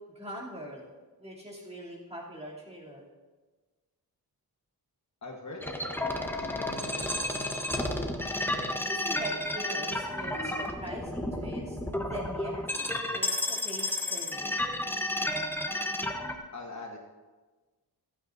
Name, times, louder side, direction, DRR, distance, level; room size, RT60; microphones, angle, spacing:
voice 1, 0.1-0.9 1.2-3.1 8.9-12.8 13.1-14.6, equal, 15° right, -5 dB, 2.8 m, -42 dB
voice 2, 5.2-7.1 16.5-17.0, left 2 dB, 45° left, 0 dB, 1.3 m, -43 dB
sound 1, 5.6-16.4, left 1 dB, 5° left, 0.8 m, -32 dB
26.5 x 9.0 x 2.6 m, 1.3 s
wide cardioid pair, 170°, 39 cm